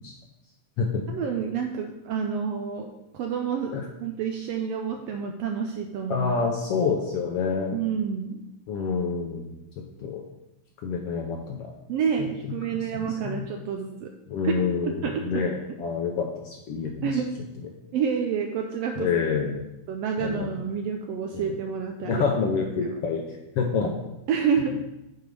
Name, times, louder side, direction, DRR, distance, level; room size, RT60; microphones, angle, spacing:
voice 1, 1.1-6.3 7.7-8.4 11.9-14.1 14.4-14.5 14.8-15.5 17.0-17.3 17.9-19.1 19.9-22.2 22.8-22.9 24.3-24.8, right 7 dB, 80° right, 4 dB, 1.5 m, -29 dB
voice 2, 6.1-7.8 8.7-10.2 10.8-11.7 12.2-12.5 13.2-13.4 14.3-17.2 19.0-19.6 20.2-20.5 21.3-21.5 22.0-23.2 23.6-23.9, left 5 dB, 75° left, 1 dB, 1.4 m, -27 dB
6.7 x 4.6 x 5.2 m, 0.93 s
omnidirectional pair, 3.3 m